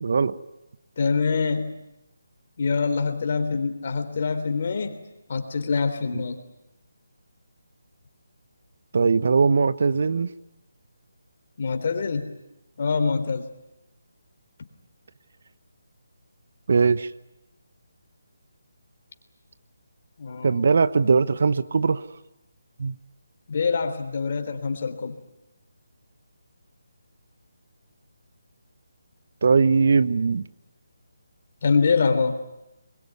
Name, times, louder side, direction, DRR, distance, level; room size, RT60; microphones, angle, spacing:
voice 1, 0.0-0.4 6.1-6.2 8.9-10.3 16.7-17.1 20.4-22.0 22.8-23.0 29.4-30.4, right 5 dB, 55° right, 15 dB, 1.0 m, -20 dB
voice 2, 1.0-1.8 2.6-5.0 5.3-6.4 11.6-12.3 12.8-13.4 20.2-20.7 23.5-25.1 31.6-32.4, left 4 dB, 50° left, 7 dB, 3.4 m, -25 dB
22.0 x 22.0 x 9.6 m, 0.92 s
figure-of-eight pair, 160°, 0 cm